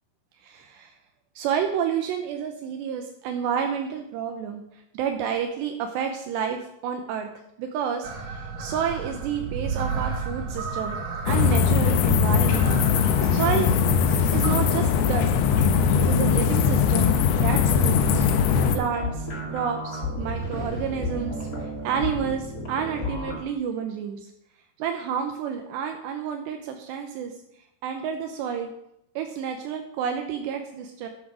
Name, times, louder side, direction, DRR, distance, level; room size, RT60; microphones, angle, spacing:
voice 1, 0.4-0.9 1.4-7.3 7.6-11.0 11.3-12.8 13.1-13.7 14.3-15.3 16.0-24.2 24.8-27.3 27.8-28.7 29.2-31.1, right 7 dB, 80° right, 5 dB, 3.0 m, -30 dB
sound 1, 8.0-14.5, right 4 dB, 60° right, 3.0 m, -33 dB
sound 2, 11.3-18.8, left 6 dB, 75° left, 2.7 m, -20 dB
sound 3, 16.5-23.4, left 1 dB, 25° left, 2.4 m, -33 dB
11.0 x 8.6 x 6.1 m, 0.80 s
omnidirectional pair, 5.0 m